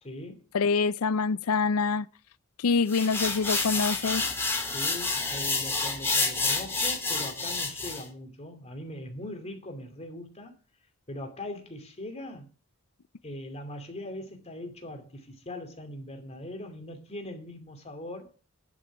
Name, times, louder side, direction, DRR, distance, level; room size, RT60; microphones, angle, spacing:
voice 1, 0.0-0.4 4.7-10.5 11.1-12.5 13.2-18.3, left 1 dB, 30° left, 2.7 m, -40 dB
voice 2, 0.5-2.0 2.6-4.2, left 4 dB, 80° left, 0.5 m, -25 dB
sound 1, 2.9-8.0, left 3 dB, 10° left, 2.9 m, -29 dB
10.5 x 7.4 x 6.0 m
head